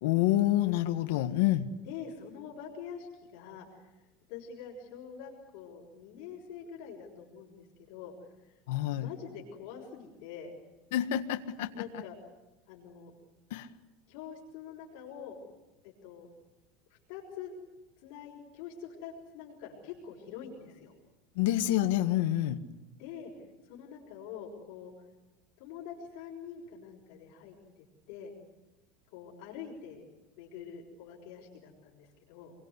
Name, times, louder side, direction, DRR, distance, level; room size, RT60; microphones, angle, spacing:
voice 1, 0.0-1.7 8.7-9.1 10.9-11.7 13.5-13.7 21.4-22.6, left 14 dB, 65° left, 7 dB, 1.6 m, -27 dB
voice 2, 1.9-3.9 4.3-8.1 8.4-8.5 8.9-10.5 11.7-12.1 12.7-13.1 14.1-15.4 15.8-16.3 16.9-17.5 18.0-20.9 23.0-23.3 23.7-24.9 25.6-27.6 28.1-28.3 29.1-30.0 30.4-32.5, left 7 dB, 50° left, -5 dB, 6.2 m, -45 dB
27.5 x 23.0 x 8.2 m, 1.1 s
supercardioid pair, 180°, 0 cm